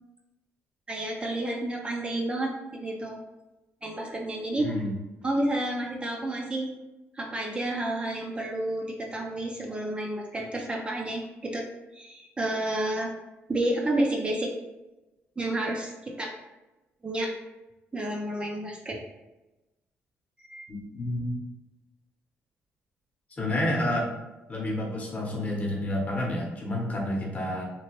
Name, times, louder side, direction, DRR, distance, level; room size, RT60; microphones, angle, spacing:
voice 1, 0.9-2.5 2.8-3.2 3.8-4.7 5.2-6.7 7.2-11.6 11.9-13.1 13.5-14.5 15.4-16.3 17.0-17.3 17.9-19.0 20.5-20.6, right 1 dB, 25° right, 0 dB, 0.4 m, -30 dB
voice 2, 4.6-4.9 20.7-21.4 23.4-24.1 24.5-27.6, left 1 dB, 35° left, -2 dB, 0.8 m, -29 dB
2.9 x 2.1 x 2.9 m, 1.0 s
cardioid pair, 105°, 5 cm